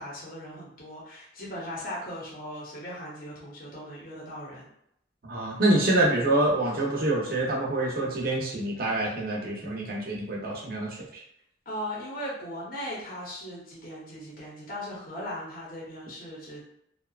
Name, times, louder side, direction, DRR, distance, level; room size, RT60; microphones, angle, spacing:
voice 1, 0.0-4.7 11.7-16.6, equal, 50° left, -5 dB, 0.8 m, -38 dB
voice 2, 5.2-11.2, right 2 dB, 50° right, -3 dB, 0.7 m, -26 dB
2.7 x 2.3 x 2.3 m, 0.73 s
head